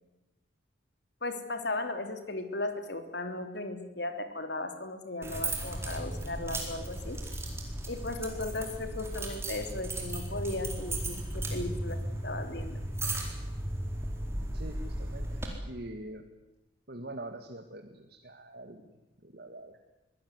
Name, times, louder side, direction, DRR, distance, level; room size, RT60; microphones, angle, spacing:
voice 1, 1.2-7.2 7.9-12.8, left 2 dB, 60° left, 7 dB, 3.3 m, -36 dB
sound 1, 5.2-15.5, right 1 dB, 15° right, 4.3 m, -36 dB
voice 2, 14.5-16.2 16.9-18.9 19.2-19.8, right 1 dB, 55° right, 5 dB, 2.0 m, -44 dB
24.5 x 17.0 x 9.8 m, 1.0 s
head